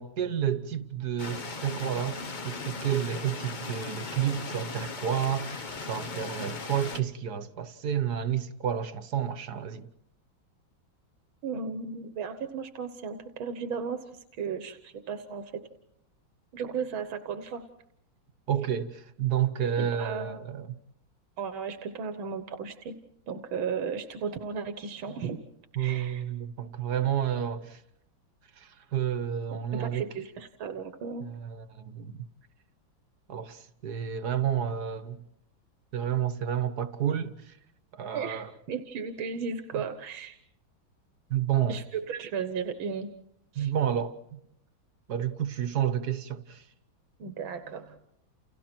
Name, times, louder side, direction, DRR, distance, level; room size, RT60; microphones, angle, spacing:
voice 1, 0.0-9.9 18.5-20.7 25.8-27.8 28.6-30.1 31.2-32.2 33.3-35.2 35.9-37.6 37.9-38.5 39.7-39.8 41.3-41.8 43.5-44.4 45.1-46.6, right 9 dB, 55° right, 1.6 m, -30 dB
sound 1, 1.2-7.0, left 4 dB, 35° left, 0.8 m, -38 dB
voice 2, 11.4-15.6 16.5-17.6 19.8-20.4 21.4-22.9 23.3-25.4 25.8-26.2 29.7-31.3 38.1-40.4 41.7-43.1 43.5-43.7 47.2-48.0, right 6 dB, 90° right, 2.1 m, -35 dB
30.0 x 29.5 x 4.5 m
omnidirectional pair, 2.1 m